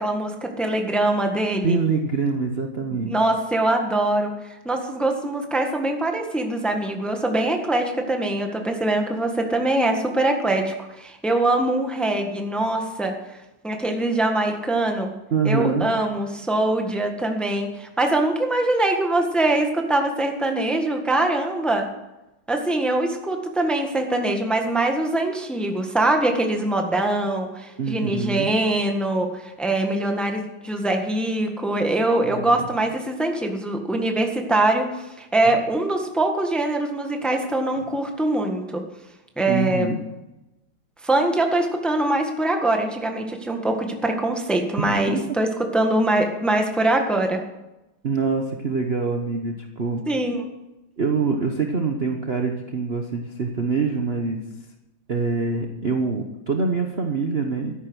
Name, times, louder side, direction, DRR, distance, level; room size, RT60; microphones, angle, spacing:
voice 1, 0.0-1.8 3.1-4.3 4.6-13.1 13.6-15.1 15.4-21.9 22.5-38.8 39.4-39.9 41.0-45.5 45.7-47.4 50.1-50.4, right 2 dB, ahead, 3 dB, 1.3 m, -23 dB
voice 2, 1.6-3.1 15.3-16.0 27.8-28.5 32.3-32.7 35.4-35.6 39.5-40.0 44.8-45.2 48.0-50.0 51.0-54.4 55.1-57.7, right 4 dB, 40° right, 3 dB, 1.1 m, -25 dB
13.5 x 10.5 x 6.3 m, 0.98 s
omnidirectional pair, 2.2 m